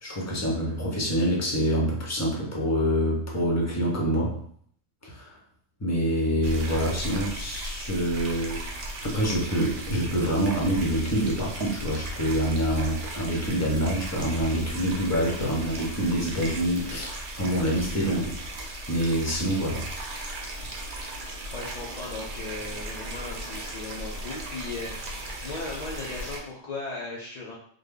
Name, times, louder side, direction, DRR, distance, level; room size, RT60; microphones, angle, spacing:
voice 1, 0.0-4.4 5.0-5.4 5.8-19.9, equal, 20° left, -2 dB, 0.5 m, -26 dB
sound 1, 6.4-26.4, right 1 dB, 50° right, 0.7 m, -37 dB
voice 2, 21.5-27.5, left 3 dB, 70° left, -4 dB, 0.4 m, -37 dB
3.3 x 2.1 x 3.6 m, 0.63 s
omnidirectional pair, 1.3 m